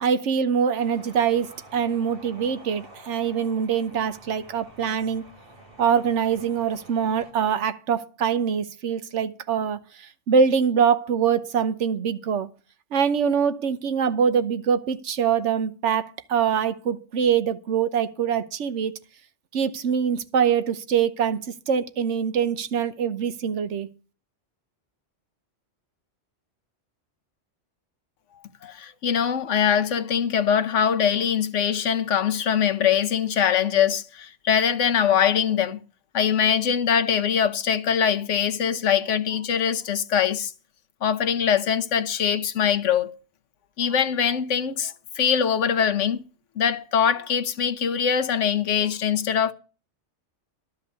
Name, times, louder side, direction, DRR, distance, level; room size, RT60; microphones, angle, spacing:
voice 1, 0.0-5.2 5.8-12.5 12.9-18.9 19.5-23.9, right 7 dB, 75° right, 1.2 m, -24 dB
sound 1, 0.7-7.3, right 1 dB, 50° right, 3.6 m, -49 dB
voice 2, 28.6-35.8 36.1-40.5 41.0-43.1 43.8-46.2 46.6-49.5, left 8 dB, 85° left, 1.2 m, -22 dB
12.5 x 5.4 x 8.1 m
omnidirectional pair, 1.2 m